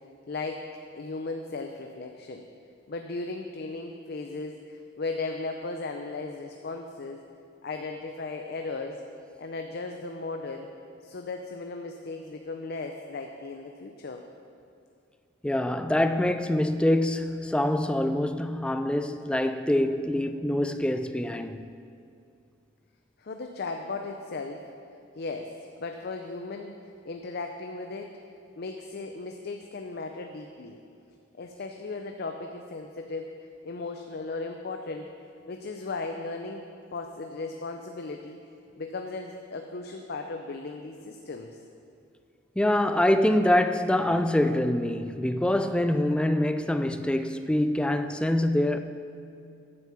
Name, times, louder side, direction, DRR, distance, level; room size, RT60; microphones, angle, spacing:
voice 1, 0.3-0.7 0.9-2.5 2.9-7.2 7.6-9.0 9.4-10.7 11.0-14.2 23.2-24.6 25.2-28.2 28.6-30.8 31.4-33.3 33.6-35.1 35.5-38.4 38.8-41.6, left 3 dB, 55° left, 0.5 m, -36 dB
voice 2, 15.4-21.6 42.6-48.8, left 1 dB, 5° left, 0.3 m, -25 dB
9.6 x 7.3 x 7.0 m
head